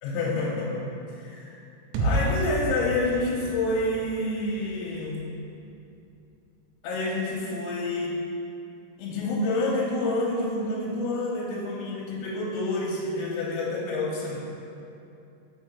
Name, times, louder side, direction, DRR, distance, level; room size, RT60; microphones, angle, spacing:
voice 1, 0.0-0.8 1.2-1.6 2.0-5.3 6.8-8.2 9.0-14.4, left 2 dB, 85° left, -5 dB, 3.5 m, -28 dB
sound 1, 1.9-5.8, equal, 80° right, 3.1 m, -31 dB
6.0 x 5.6 x 5.3 m, 2.6 s
omnidirectional pair, 5.8 m